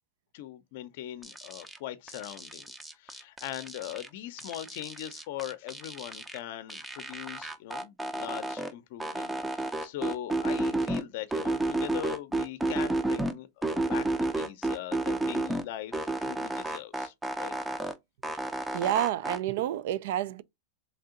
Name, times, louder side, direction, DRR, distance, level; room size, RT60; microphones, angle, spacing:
voice 1, 0.3-14.1 14.4-17.6, left 13 dB, 60° left, 0.5 m, -40 dB
sound 1, 1.2-1.8 2.1-4.1 4.4-6.4 6.7-8.7 9.0-11.0 11.3-13.3 13.6-15.6 15.9-17.9 18.2-19.4, right 2 dB, 5° right, 0.5 m, -31 dB
voice 2, 18.7-20.4, right 12 dB, 65° right, 0.3 m, -29 dB
3.2 x 2.7 x 3.8 m
supercardioid pair, 135°, 0 cm